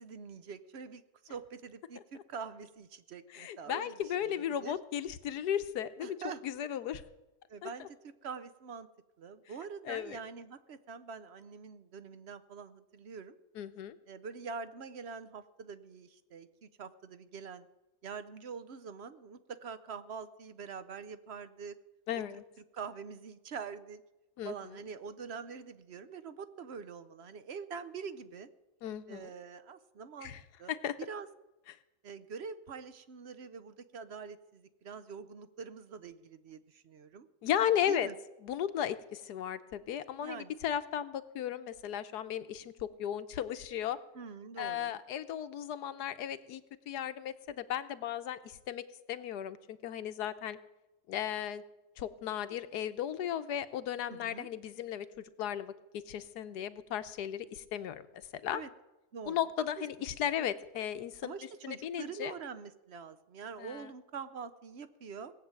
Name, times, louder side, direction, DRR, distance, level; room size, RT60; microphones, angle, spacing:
voice 1, 0.0-4.8 6.0-6.4 7.5-8.0 8.2-8.9 9.2-13.4 14.1-17.7 18.0-21.8 22.7-24.0 24.4-28.5 29.1-30.3 30.6-30.7 31.1-31.3 32.0-37.3 37.9-38.1 40.2-40.5 44.1-44.9 54.1-54.5 58.5-58.7 59.1-59.4 59.8-59.9 61.2-65.3, right 5 dB, 50° right, 13 dB, 0.8 m, -45 dB
voice 2, 3.3-6.2 6.4-7.0 7.6-7.9 9.8-10.2 13.5-14.0 22.1-22.4 24.4-24.8 28.8-29.3 30.2-30.4 30.7-31.0 31.7-31.8 37.4-38.1 38.4-44.0 44.6-50.6 51.1-51.6 52.0-58.1 58.4-58.6 59.3-61.4 61.6-62.3 63.6-63.9, left 10 dB, 80° left, 13 dB, 1.3 m, -35 dB
18.5 x 7.7 x 8.8 m, 0.99 s
omnidirectional pair, 1.7 m